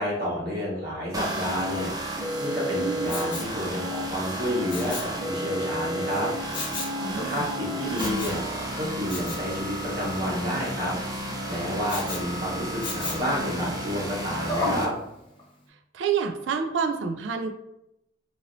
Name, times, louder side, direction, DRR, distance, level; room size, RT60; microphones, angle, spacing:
voice 1, 0.0-1.9 2.4-6.3 7.0-8.4 8.8-10.9 11.5-14.9, equal, 55° right, -6 dB, 1.1 m, -30 dB
sound 1, 1.1-14.8, equal, 20° right, 0.4 m, -32 dB
voice 2, 2.8-3.1 7.0-7.5 15.9-17.5, right 6 dB, 80° right, 5 dB, 0.3 m, -28 dB
Respiratory sounds, 3.1-3.6 4.7-5.2 6.5-7.0 8.0-8.4 9.1-9.4 11.9-12.3 12.8-13.3 14.5-14.9 15.4-15.5, left 2 dB, 30° left, 0.8 m, -32 dB
2.9 x 2.7 x 2.6 m, 0.83 s
head